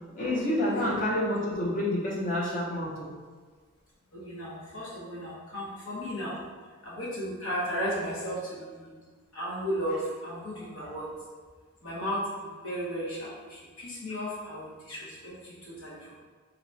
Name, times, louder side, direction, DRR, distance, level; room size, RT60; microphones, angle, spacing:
voice 1, 0.1-3.1, left 1 dB, 40° left, -4 dB, 0.7 m, -28 dB
voice 2, 4.1-6.4 6.8-8.9 9.3-11.1 11.8-16.2, equal, 90° left, -7 dB, 1.1 m, -35 dB
2.9 x 2.3 x 3.9 m, 1.5 s
head